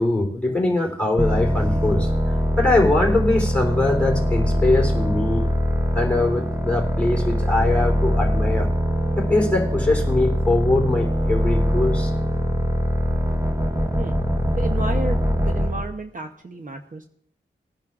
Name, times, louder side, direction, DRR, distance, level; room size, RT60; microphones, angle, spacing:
voice 1, 0.0-5.5 5.9-8.7 9.2-12.1, left 2 dB, 5° left, -1 dB, 3.3 m, -22 dB
sound 1, 1.2-15.9, equal, 15° right, 1.2 m, -22 dB
voice 2, 14.6-17.0, right 2 dB, 45° right, 5 dB, 0.8 m, -32 dB
21.0 x 10.5 x 2.4 m, 0.63 s
wide cardioid pair, 95°, 19 cm